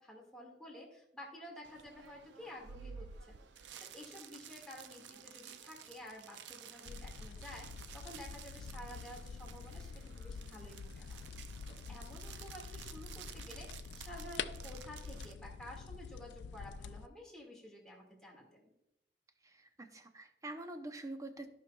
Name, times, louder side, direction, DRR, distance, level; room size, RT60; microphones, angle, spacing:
voice 1, 0.0-11.2 11.7-18.7, left 1 dB, 5° left, -3 dB, 1.9 m, -52 dB
sound 1, 1.6-15.3, right 8 dB, 80° right, 0.5 m, -53 dB
sound 2, 6.8-17.1, left 5 dB, 80° left, 0.3 m, -46 dB
voice 2, 19.4-21.5, right 2 dB, 20° right, 7 dB, 0.6 m, -46 dB
14.5 x 5.4 x 2.3 m, 0.84 s
head